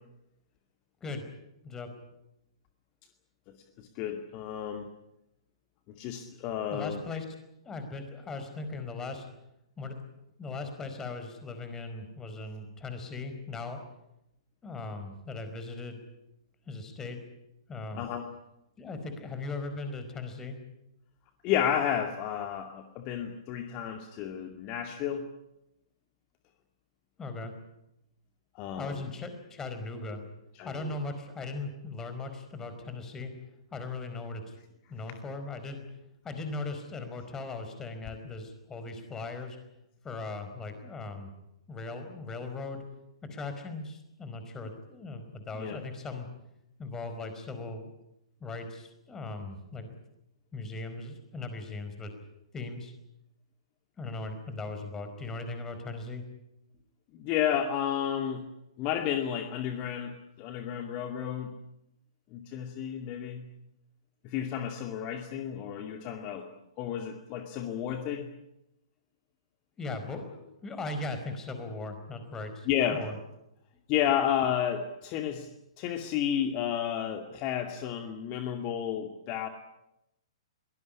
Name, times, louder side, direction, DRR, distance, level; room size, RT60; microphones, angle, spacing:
voice 1, 3.8-4.9 5.9-7.0 17.9-18.2 21.4-25.3 28.5-29.1 30.6-31.0 35.1-35.2 45.6-45.8 57.1-58.5 58.8-61.6 62.3-63.4 64.2-66.5 66.8-68.3 72.7-73.1 73.9-75.5 75.8-79.5, left 9 dB, 35° left, 6 dB, 2.2 m, -31 dB
voice 2, 6.7-7.2 7.6-9.2 9.8-10.0 10.4-13.8 14.6-16.0 16.7-17.2 17.7-18.1 18.8-20.6 27.2-27.5 28.8-30.2 30.6-33.3 33.7-34.5 34.9-35.8 36.2-39.6 40.0-41.3 41.7-42.8 43.3-46.3 46.8-47.9 48.4-49.9 50.5-52.1 52.5-52.9 54.0-56.2 69.8-73.2, left 3 dB, 15° left, 8 dB, 4.7 m, -38 dB
23.0 x 19.5 x 9.9 m, 0.86 s
figure-of-eight pair, 115°, 3 cm